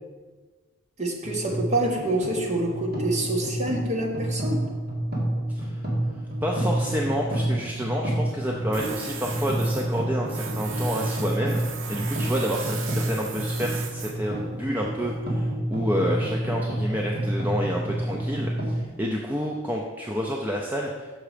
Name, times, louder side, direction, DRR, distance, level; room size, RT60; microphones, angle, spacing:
voice 1, 1.0-4.6, right 1 dB, 35° right, -1 dB, 1.2 m, -26 dB
sound 1, 1.2-18.8, right 1 dB, 50° right, 2.0 m, -29 dB
voice 2, 6.4-21.2, equal, 10° right, -1 dB, 0.5 m, -29 dB
Tools, 8.7-15.2, right 6 dB, 70° right, 0.7 m, -38 dB
6.5 x 5.9 x 5.0 m, 1.4 s
head